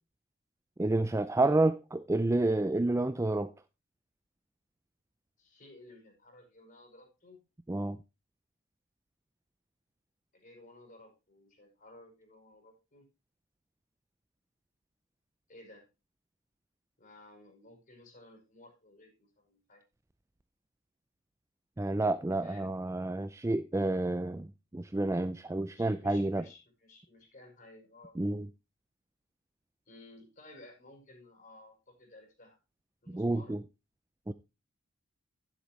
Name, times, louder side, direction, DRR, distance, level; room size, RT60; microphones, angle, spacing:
voice 1, 0.8-3.5 7.7-8.0 21.8-26.4 28.2-28.5 33.1-33.6 34.3-34.4, right 2 dB, 15° right, 0.4 m, -29 dB
voice 2, 5.4-7.4 10.3-13.1 15.5-15.8 17.0-19.8 22.4-22.8 25.7-28.1 29.9-32.6 33.0-33.5, left 2 dB, 40° left, 5.9 m, -55 dB
11.5 x 10.5 x 3.2 m
head